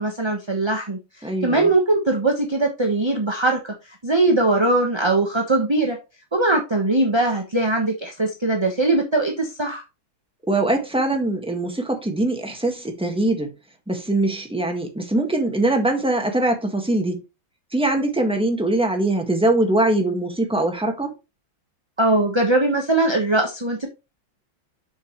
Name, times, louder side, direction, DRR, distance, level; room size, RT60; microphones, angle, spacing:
voice 1, 0.0-6.0 6.3-9.8 22.0-23.9, right 2 dB, 20° right, 0.8 m, -21 dB
voice 2, 1.2-1.7 10.5-13.5 13.9-17.2 17.7-21.1, right 2 dB, 5° right, 1.3 m, -22 dB
7.2 x 6.6 x 3.1 m
omnidirectional pair, 2.2 m